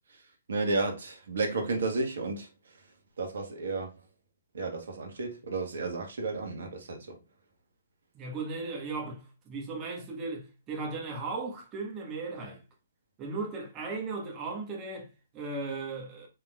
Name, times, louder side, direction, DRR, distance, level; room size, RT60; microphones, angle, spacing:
voice 1, 0.5-2.5 3.2-3.9 4.5-7.1, right 3 dB, 70° right, 1.4 m, -32 dB
voice 2, 8.1-12.6 13.2-16.3, right 3 dB, 25° right, 1.3 m, -37 dB
4.7 x 3.7 x 2.3 m
figure-of-eight pair, 125°, 0 cm